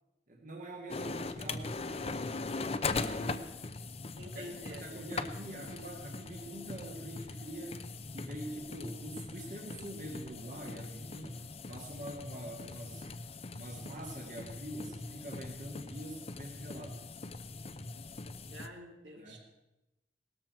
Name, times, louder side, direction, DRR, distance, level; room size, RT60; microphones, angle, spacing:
voice 1, 0.3-3.5 4.2-7.8 8.1-11.4 11.7-13.1 13.5-17.0 19.2-19.4, right 1 dB, 45° right, 0 dB, 1.7 m, -45 dB
sound 1, 0.9-18.7, left 3 dB, 30° left, 0.6 m, -41 dB
voice 2, 4.2-4.8 18.5-19.4, equal, 75° right, 1 dB, 3.0 m, -47 dB
18.0 x 13.5 x 4.6 m, 0.97 s
head